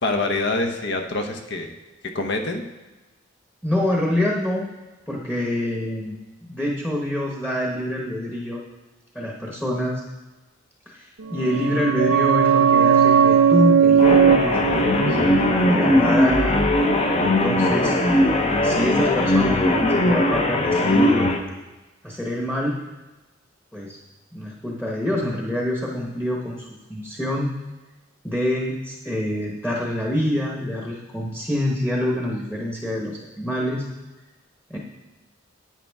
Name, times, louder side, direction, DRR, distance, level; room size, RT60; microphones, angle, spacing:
voice 1, 0.0-1.7 2.1-2.6, left 2 dB, 60° left, 4 dB, 1.0 m, -25 dB
voice 2, 3.6-4.7 5.1-6.2 6.5-8.6 9.1-10.0 10.9-16.6 17.2-18.0 18.3-21.3 22.0-22.8 23.7-24.0 24.3-27.5 28.2-33.8 34.7-34.8, left 1 dB, 5° left, -2 dB, 1.0 m, -26 dB
sound 1, 11.3-16.7 17.0-17.1, right 7 dB, 85° right, 0.6 m, -18 dB
sound 2, 14.0-21.4, left 1 dB, 35° left, 0.8 m, -19 dB
10.5 x 9.0 x 3.5 m, 1.1 s
head